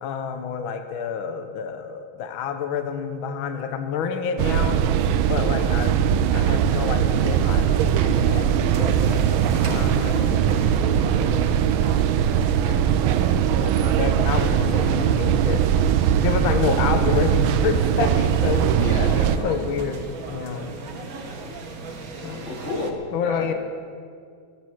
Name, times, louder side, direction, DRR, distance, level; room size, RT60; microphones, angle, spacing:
voice 1, 0.0-4.8 5.3-6.0 6.3-10.4 11.1-12.2 13.2-15.7 16.2-18.8 19.4-20.9 22.2-22.5 23.1-23.5, left 6 dB, 75° left, 7 dB, 1.7 m, -29 dB
sound 1, 4.4-19.4, right 9 dB, 80° right, 1.4 m, -20 dB
sound 2, 6.7-22.9, right 4 dB, 50° right, 1.4 m, -37 dB
voice 2, 18.8-19.6 22.5-23.5, left 2 dB, 35° left, 0 dB, 2.1 m, -30 dB
16.0 x 8.6 x 7.8 m, 2.2 s
omnidirectional pair, 2.3 m